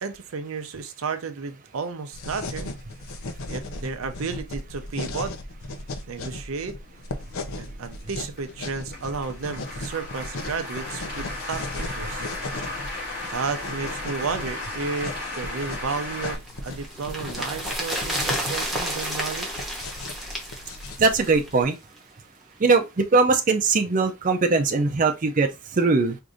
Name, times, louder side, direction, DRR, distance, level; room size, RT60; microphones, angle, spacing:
voice 1, 0.0-2.7 3.5-5.4 6.1-6.8 7.6-12.3 13.3-19.7, right 5 dB, 90° right, 0.6 m, -32 dB
sound 1, 2.1-21.6, left 2 dB, 85° left, 0.6 m, -37 dB
sound 2, 7.1-16.4, left 2 dB, 45° left, 2.1 m, -36 dB
sound 3, 16.3-21.7 22.0-22.1, equal, ahead, 1.0 m, -31 dB
voice 2, 21.0-21.8 22.6-26.2, right 4 dB, 40° right, 0.5 m, -21 dB
4.7 x 2.6 x 2.5 m
head